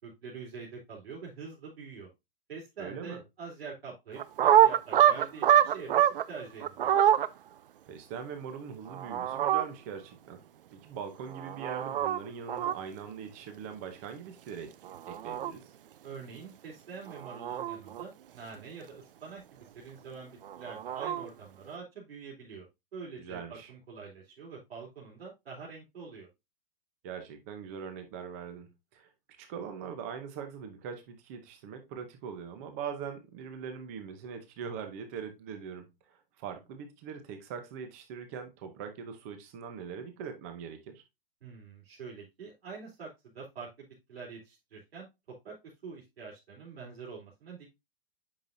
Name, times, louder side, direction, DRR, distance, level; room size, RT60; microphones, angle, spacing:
voice 1, 0.0-2.1 2.5-7.0 16.0-22.7 22.9-26.3 41.4-43.1 43.3-45.1 45.4-45.5 45.8-47.7, right 5 dB, 90° right, 3.6 m, -45 dB
voice 2, 2.8-3.2 7.9-10.4 10.7-14.7 15.1-15.6 23.2-23.7 27.0-29.1 29.4-41.0, right 7 dB, 15° right, 0.7 m, -41 dB
sound 1, 4.2-6.2 6.6-7.3 8.9-9.6 11.3-12.2 12.5-12.7 14.8-15.5 17.1-18.0 20.4-21.3, right 10 dB, 65° right, 0.6 m, -25 dB
8.6 x 5.9 x 2.6 m
hypercardioid pair, 180°, 30 cm